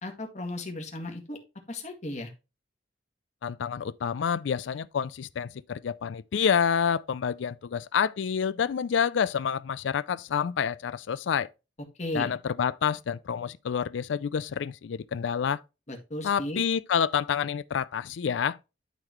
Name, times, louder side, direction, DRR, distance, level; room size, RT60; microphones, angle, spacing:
voice 1, 0.0-1.4 1.7-2.3 12.0-12.3 15.9-16.6, left 1 dB, 40° left, 1.8 m, -35 dB
voice 2, 3.4-11.5 12.1-15.6 16.2-18.6, left 7 dB, 75° left, 0.4 m, -28 dB
12.0 x 4.0 x 3.0 m
head